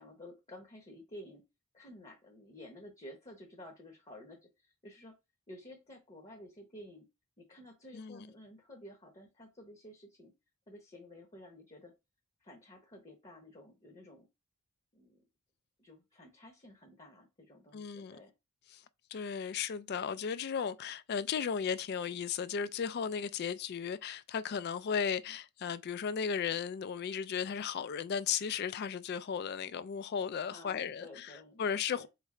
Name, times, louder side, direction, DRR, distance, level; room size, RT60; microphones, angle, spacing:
voice 1, 0.0-1.4 1.7-5.1 5.5-7.1 7.4-10.3 10.7-11.9 12.4-14.3 14.9-15.2 15.8-18.3 30.5-31.6 31.9-32.1, left 1 dB, 25° left, 0.8 m, -52 dB
voice 2, 7.9-8.3 17.7-18.2 18.7-18.8 19.1-31.1 31.6-32.1, left 7 dB, 45° left, 0.3 m, -35 dB
4.0 x 3.3 x 3.7 m
head